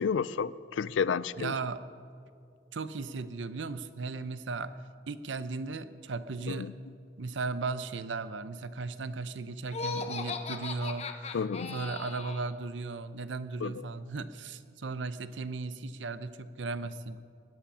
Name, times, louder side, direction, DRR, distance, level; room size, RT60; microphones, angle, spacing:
voice 1, 0.0-1.5 6.5-6.7 11.3-11.7 13.6-13.7, left 6 dB, 90° left, 18 dB, 0.4 m, -31 dB
voice 2, 1.4-1.8 2.7-4.7 5.1-6.7 7.2-11.1 11.7-17.2, right 3 dB, 80° right, 13 dB, 0.6 m, -36 dB
Laughter, 9.7-12.5, left 4 dB, 35° left, 0.8 m, -38 dB
18.0 x 11.5 x 5.6 m, 2.3 s
head